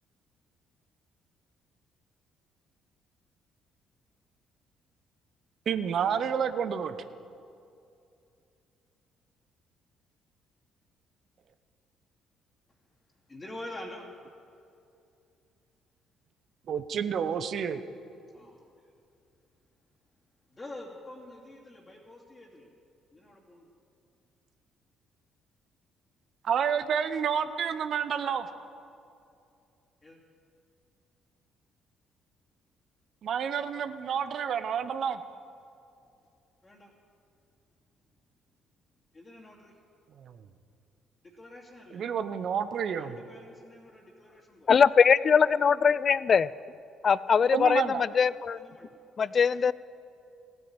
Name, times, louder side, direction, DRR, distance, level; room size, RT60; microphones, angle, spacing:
voice 1, 5.7-7.0 16.7-17.8 26.4-28.5 33.2-35.2 40.2-40.4 41.9-43.2 47.5-48.0, right 7 dB, 55° right, 11 dB, 0.8 m, -29 dB
voice 2, 13.3-14.1 18.3-18.7 20.5-22.7 23.1-23.7 30.0-30.2 36.6-36.9 39.1-39.7 41.2-42.0 42.9-44.7 48.5-48.9, left 1 dB, 25° left, -4 dB, 2.6 m, -46 dB
voice 3, 44.7-46.5 47.0-48.6 49.2-49.7, left 6 dB, 45° left, 19 dB, 0.4 m, -22 dB
16.0 x 9.5 x 8.9 m, 2.6 s
hypercardioid pair, 50°, 0 cm